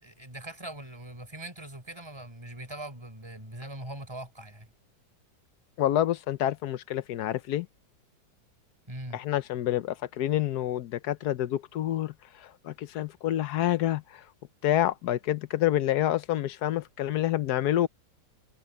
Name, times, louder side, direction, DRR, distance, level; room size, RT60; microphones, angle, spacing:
voice 1, 0.0-4.7 8.9-9.2, right 1 dB, 15° right, 4.5 m, -41 dB
voice 2, 5.8-7.7 9.1-14.2 14.6-17.9, left 12 dB, 70° left, 1.2 m, -28 dB
omnidirectional pair, 1.9 m